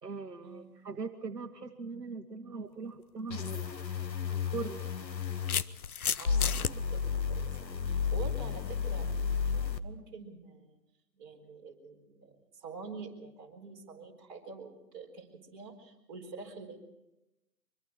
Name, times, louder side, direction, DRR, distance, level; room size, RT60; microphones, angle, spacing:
voice 1, 0.0-5.1, right 4 dB, 70° right, 6 dB, 1.5 m, -41 dB
sound 1, 3.3-5.6 6.3-9.8, left 6 dB, 85° left, 1.3 m, -32 dB
sound 2, 3.6-3.7 4.8-6.7, left 7 dB, 60° left, 0.7 m, -32 dB
voice 2, 6.2-7.5 7.8-9.1 9.5-10.8 11.2-12.3 12.6-16.8, right 4 dB, 30° right, -2 dB, 4.2 m, -46 dB
24.0 x 24.0 x 4.6 m, 0.93 s
figure-of-eight pair, 150°, 50 cm